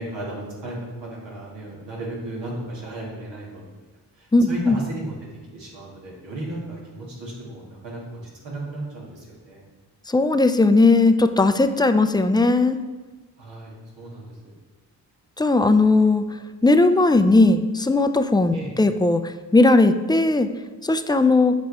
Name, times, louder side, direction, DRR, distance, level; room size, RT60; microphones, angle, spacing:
voice 1, 0.0-3.7 4.2-5.2 5.5-9.6 13.4-14.4 18.5-18.7, right 1 dB, 85° right, -4 dB, 2.3 m, -35 dB
voice 2, 4.3-4.8 10.1-12.8 15.4-16.2 16.6-20.5 20.8-21.5, left 2 dB, 10° left, 9 dB, 0.5 m, -17 dB
7.8 x 5.3 x 4.2 m, 1.2 s
cardioid pair, 55°, 42 cm